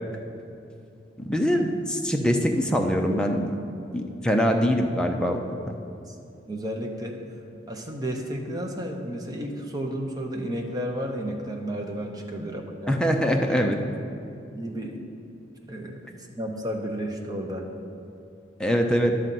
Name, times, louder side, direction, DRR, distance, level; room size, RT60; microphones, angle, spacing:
voice 1, 1.2-3.5 3.9-5.4 5.6-5.7 12.4-12.6 12.9-13.8 18.6-19.1, equal, 5° left, 2 dB, 0.6 m, -23 dB
voice 2, 6.5-7.2 7.7-13.0 14.5-15.0 15.7-16.0 16.4-17.7, equal, 20° right, 1 dB, 0.9 m, -32 dB
11.5 x 4.0 x 7.5 m, 2.6 s
head